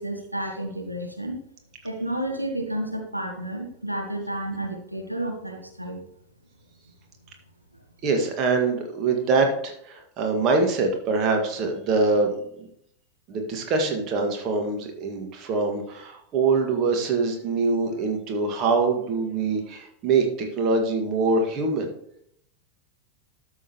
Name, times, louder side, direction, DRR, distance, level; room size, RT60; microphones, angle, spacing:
voice 1, 0.0-1.4 1.8-6.0, right 1 dB, 90° right, 2 dB, 1.1 m, -31 dB
voice 2, 8.0-12.7 13.3-21.9, right 3 dB, 35° right, 3 dB, 1.8 m, -24 dB
12.5 x 6.5 x 3.0 m, 0.69 s
figure-of-eight pair, 90°, 0 cm